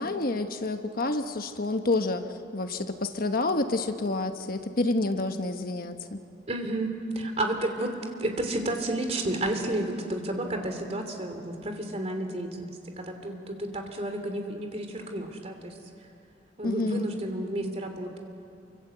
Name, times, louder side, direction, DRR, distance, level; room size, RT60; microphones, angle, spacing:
voice 1, 0.0-6.2 16.6-17.1, left 2 dB, 55° left, 7 dB, 1.2 m, -29 dB
voice 2, 6.5-15.7 16.6-18.2, right 1 dB, 35° right, 5 dB, 3.0 m, -31 dB
28.5 x 25.0 x 8.0 m, 2.5 s
head